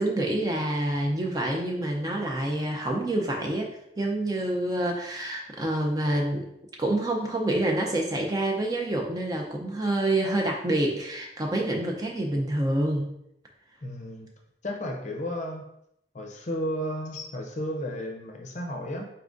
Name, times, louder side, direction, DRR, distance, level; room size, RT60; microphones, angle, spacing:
voice 1, 0.0-6.5 6.8-13.1, right 1 dB, 20° right, 0 dB, 0.5 m, -27 dB
voice 2, 13.8-14.3 14.6-15.7 16.1-19.0, equal, 40° left, 2 dB, 0.6 m, -33 dB
4.4 x 3.6 x 2.5 m, 0.76 s
head